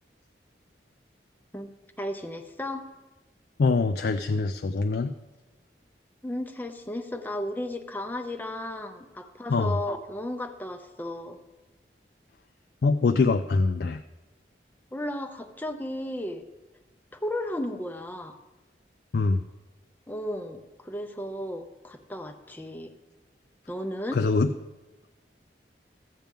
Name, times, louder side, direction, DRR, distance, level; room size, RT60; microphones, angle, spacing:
voice 1, 1.5-2.9 6.2-11.4 14.9-16.4 17.1-18.4 20.1-22.9 23.7-24.2, left 1 dB, 10° left, 5 dB, 0.5 m, -34 dB
voice 2, 3.6-5.1 9.5-9.8 12.8-14.0 19.1-19.4 24.1-24.5, left 3 dB, 60° left, 8 dB, 0.4 m, -24 dB
14.0 x 8.9 x 3.6 m, 1.1 s
head